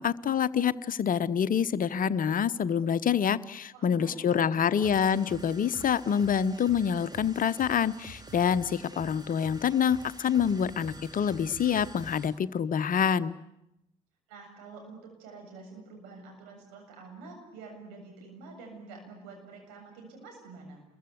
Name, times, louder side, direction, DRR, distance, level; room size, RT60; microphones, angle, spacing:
voice 1, 0.0-13.3, left 8 dB, 45° left, 15 dB, 0.9 m, -26 dB
voice 2, 3.7-4.9 14.3-20.8, right 3 dB, 70° right, 2 dB, 7.3 m, -47 dB
sound 1, 4.8-12.4, right 2 dB, 20° right, 2.8 m, -47 dB
29.0 x 22.5 x 8.2 m, 0.85 s
figure-of-eight pair, 40°, 19 cm